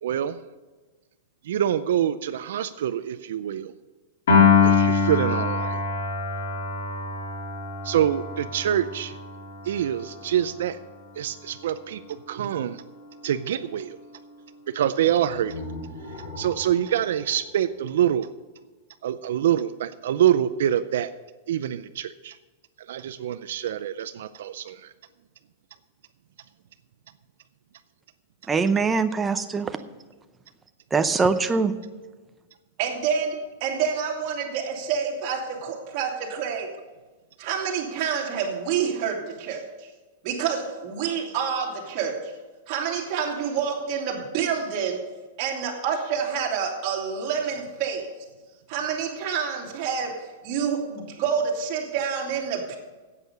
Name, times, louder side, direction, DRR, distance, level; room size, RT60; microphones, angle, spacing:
voice 1, 0.0-0.4 1.4-3.7 4.6-5.8 7.8-9.2 9.6-10.8 11.2-12.8 13.2-14.0 14.7-15.6 16.2-18.3 19.0-21.1 21.5-22.4 22.8-24.9, right 10 dB, 75° right, 12 dB, 0.5 m, -25 dB
Piano, 4.3-10.7, left 5 dB, 80° left, 2.6 m, -24 dB
sound 1, 15.1-18.3, left 2 dB, 50° left, 4.3 m, -40 dB
voice 2, 28.5-29.8 30.9-31.8, right 4 dB, 10° right, 9 dB, 0.6 m, -22 dB
voice 3, 32.8-36.7 37.4-39.6 40.2-42.3 42.7-45.0 45.4-48.1 48.7-52.7, right 7 dB, 40° right, -3 dB, 2.6 m, -28 dB
10.5 x 8.3 x 6.7 m, 1.3 s
supercardioid pair, 165°, 0 cm